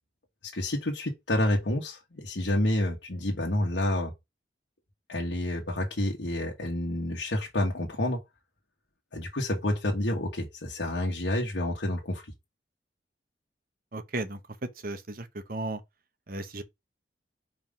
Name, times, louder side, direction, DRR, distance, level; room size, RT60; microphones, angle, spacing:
voice 1, 0.4-4.1 5.1-8.2 9.1-12.2, left 1 dB, 90° left, 1.4 m, -29 dB
voice 2, 13.9-15.8 16.3-16.6, right 2 dB, 55° right, 1.0 m, -35 dB
5.0 x 3.8 x 5.1 m
head